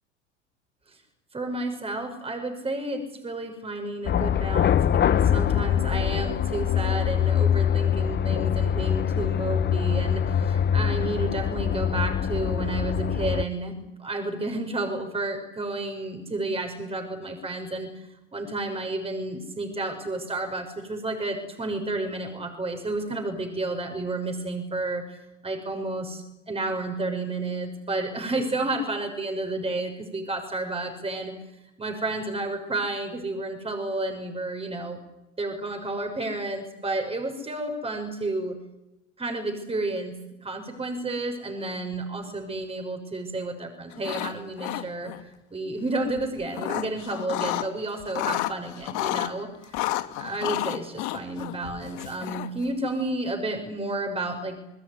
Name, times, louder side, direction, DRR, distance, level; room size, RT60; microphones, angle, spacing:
voice 1, 1.3-13.7 14.0-25.2 25.4-31.3 31.8-35.0 35.4-38.6 39.2-45.1 45.5-49.9 50.2-54.6, right 2 dB, 15° right, 5 dB, 6.2 m, -31 dB
sound 1, 4.1-13.4, left 9 dB, 30° left, 1.4 m, -24 dB
sound 2, 43.9-44.3 44.6-45.2 46.2-47.7 48.0-49.3 49.7-52.6, left 16 dB, 50° left, 2.4 m, -30 dB
29.0 x 20.5 x 9.8 m, 0.92 s
hypercardioid pair, 90°, 37 cm